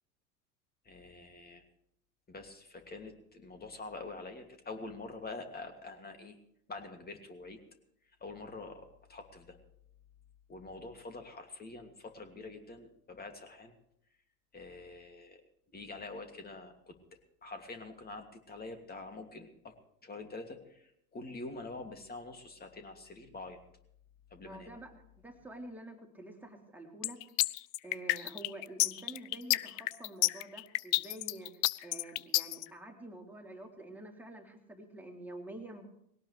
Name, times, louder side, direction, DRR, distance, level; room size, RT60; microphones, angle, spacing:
voice 1, 0.8-1.6 2.3-6.4 6.7-7.6 8.2-9.6 10.5-13.7 14.5-15.4 15.7-17.0 17.4-19.7 20.0-23.6 24.3-24.7, left 3 dB, 20° left, 5 dB, 2.7 m, -46 dB
voice 2, 24.4-27.2 27.8-35.9, right 1 dB, 5° right, 0 dB, 3.3 m, -48 dB
sound 1, 27.0-32.6, left 20 dB, 55° left, 0.5 m, -29 dB
20.0 x 17.5 x 3.4 m, 0.72 s
hypercardioid pair, 85°, 43 cm